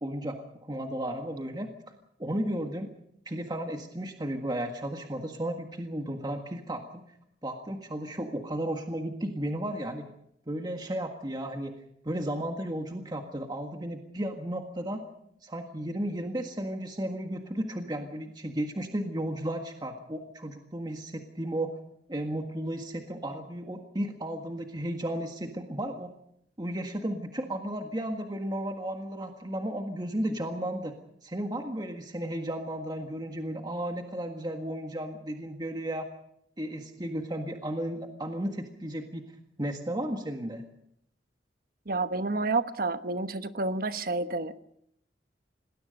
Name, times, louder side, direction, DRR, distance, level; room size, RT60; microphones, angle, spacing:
voice 1, 0.0-1.7 2.2-2.9 3.2-7.0 7.4-10.1 10.5-11.8 12.0-15.0 15.4-21.8 22.1-26.1 26.6-30.9 31.2-36.1 36.6-39.3 39.6-40.6, right 1 dB, 25° right, 4 dB, 1.7 m, -34 dB
voice 2, 41.9-44.6, right 3 dB, 55° right, 10 dB, 1.1 m, -29 dB
27.5 x 20.0 x 5.3 m, 0.74 s
head